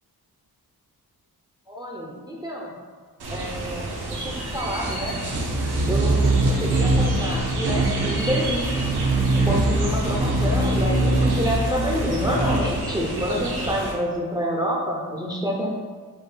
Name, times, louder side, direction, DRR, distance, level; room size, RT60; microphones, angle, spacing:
voice 1, 1.7-2.7 3.3-5.2 5.9-8.7 9.4-15.7, equal, 10° right, -1 dB, 0.4 m, -28 dB
sound 1, 3.2-13.9, right 2 dB, 75° right, 0.9 m, -23 dB
6.4 x 2.1 x 3.2 m, 1.5 s
wide cardioid pair, 105°, 38 cm